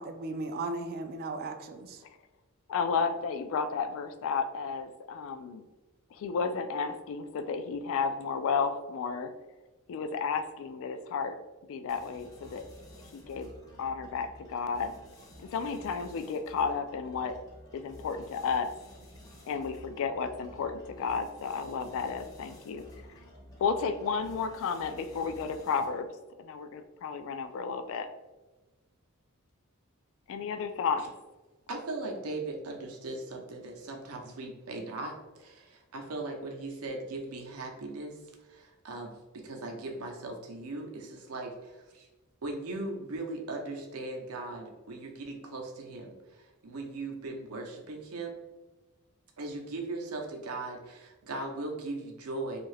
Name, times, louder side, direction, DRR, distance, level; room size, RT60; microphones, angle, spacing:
voice 1, 0.0-2.0, right 2 dB, 45° right, 7 dB, 0.3 m, -36 dB
voice 2, 2.7-5.6 6.1-9.3 9.9-11.4 11.7-12.6 13.1-13.5 13.8-14.9 15.4-17.4 17.7-18.7 19.5-22.8 23.6-26.1 26.4-28.1 30.3-31.1, left 5 dB, 65° left, 10 dB, 0.3 m, -32 dB
sound 1, 11.9-26.1, equal, 15° left, 0.7 m, -52 dB
voice 3, 31.7-38.2 38.5-39.1 39.4-42.1 42.4-48.4 49.4-52.6, right 2 dB, 80° right, 2 dB, 0.6 m, -39 dB
2.7 x 2.4 x 3.2 m, 1.2 s
head